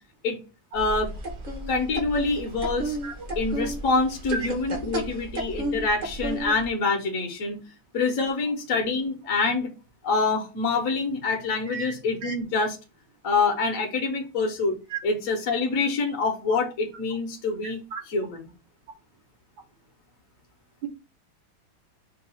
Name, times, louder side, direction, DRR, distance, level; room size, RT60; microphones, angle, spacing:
voice 1, 0.7-1.1 1.7-3.0 3.4-7.6 7.9-9.7 10.0-12.8 13.2-14.8 15.0-17.8 18.1-18.5, left 3 dB, 50° left, 1.1 m, -26 dB
sound 1, 0.7-6.7, right 1 dB, 35° right, 0.7 m, -33 dB
voice 2, 3.0-3.1 11.7-11.9 12.2-12.3 14.9-15.0 17.9-18.0, right 6 dB, 70° right, 1.6 m, -33 dB
4.5 x 2.3 x 4.3 m
omnidirectional pair, 2.1 m